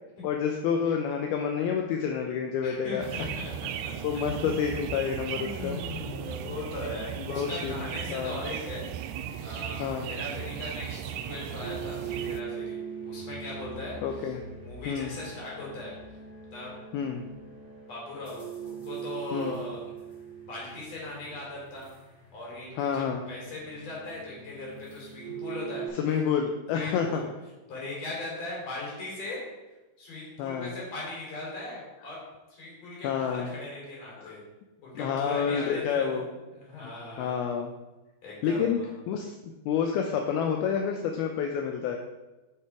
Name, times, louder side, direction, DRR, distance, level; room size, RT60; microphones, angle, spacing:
voice 1, 0.2-3.3 4.0-5.8 7.3-8.5 9.8-10.1 14.0-14.4 14.9-15.2 16.9-17.2 19.3-19.6 22.8-23.2 25.9-27.2 30.4-30.7 33.0-33.5 34.2-34.3 35.0-36.3 36.8-36.9 37.2-37.7 38.4-38.8 39.1-39.3 39.7-42.0, left 7 dB, 80° left, 3 dB, 2.4 m, -29 dB
voice 2, 2.6-4.0 4.3-4.5 5.3-9.1 9.4-14.3 14.6-15.9 16.5-16.7 17.9-19.8 20.4-21.9 22.3-25.9 26.7-27.3 27.7-29.4 30.0-32.2 32.5-34.4 34.8-36.3 36.5-37.4 38.2-38.9, left 2 dB, 40° left, -4 dB, 4.1 m, -39 dB
sound 1, 3.0-12.4, right 9 dB, 90° right, 2.7 m, -36 dB
sound 2, 11.6-25.9, right 7 dB, 20° left, 2.1 m, -41 dB
9.1 x 6.4 x 4.7 m, 1.1 s
omnidirectional pair, 4.7 m